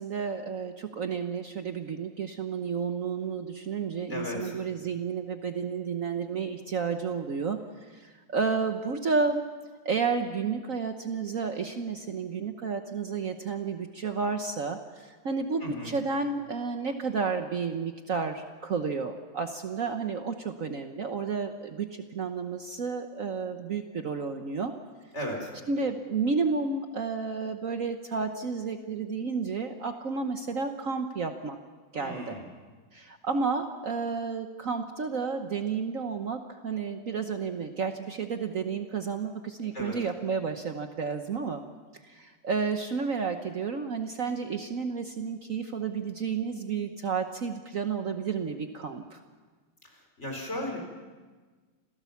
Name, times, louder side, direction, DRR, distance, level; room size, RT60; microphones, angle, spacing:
voice 1, 0.0-9.4 9.8-24.8 25.7-31.6 31.9-32.4 32.9-41.6 42.0-49.2, right 5 dB, 55° right, 6 dB, 1.3 m, -31 dB
voice 2, 4.1-4.5 15.6-15.9 25.1-25.5 31.9-32.4 39.7-39.9 50.2-50.8, left 1 dB, 35° left, 1 dB, 4.6 m, -35 dB
27.0 x 17.0 x 7.1 m, 1.4 s
omnidirectional pair, 1.9 m